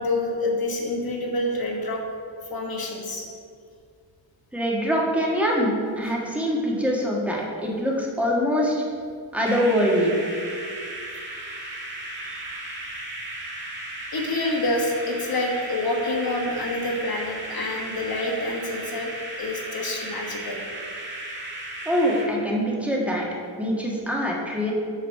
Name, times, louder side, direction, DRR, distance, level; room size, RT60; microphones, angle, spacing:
voice 1, 0.0-2.0 2.5-3.2 12.1-13.0 14.1-19.1 19.4-20.6, left 2 dB, 50° left, 0 dB, 1.4 m, -27 dB
voice 2, 4.5-8.8 9.3-10.1 21.8-23.2 23.6-24.7, equal, 5° right, -3 dB, 1.5 m, -24 dB
sound 1, 9.4-22.3, right 1 dB, 25° right, 1.8 m, -36 dB
7.6 x 4.1 x 6.5 m, 2.2 s
wide cardioid pair, 105°, 46 cm